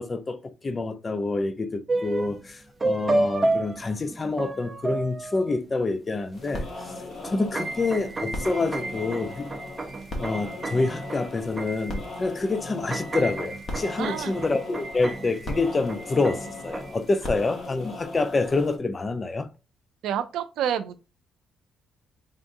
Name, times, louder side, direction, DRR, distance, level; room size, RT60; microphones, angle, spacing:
voice 1, 0.0-6.9 7.2-9.5 10.2-19.5, left 3 dB, 30° left, 0.5 m, -27 dB
sound 1, 1.9-2.5 2.8-5.7 6.5-6.6 6.9-12.3 12.6-17.1, right 2 dB, 25° right, 0.6 m, -31 dB
sound 2, 6.3-18.8, left 2 dB, 45° left, 1.3 m, -37 dB
voice 2, 14.0-14.3 20.0-21.0, right 9 dB, 85° right, 0.5 m, -28 dB
3.7 x 3.5 x 2.6 m
cardioid pair, 90°, 0 cm